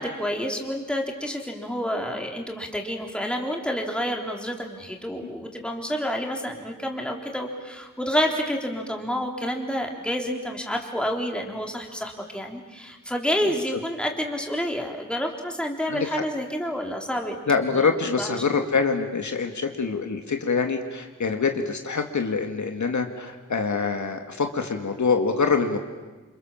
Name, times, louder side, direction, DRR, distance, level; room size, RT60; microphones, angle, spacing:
voice 1, 0.0-17.4 18.2-18.3, equal, 5° left, 1 dB, 3.5 m, -29 dB
voice 2, 15.9-16.2 17.5-25.8, left 5 dB, 60° left, 5 dB, 2.2 m, -25 dB
28.5 x 28.0 x 7.4 m, 1.3 s
wide cardioid pair, 145°, 32 cm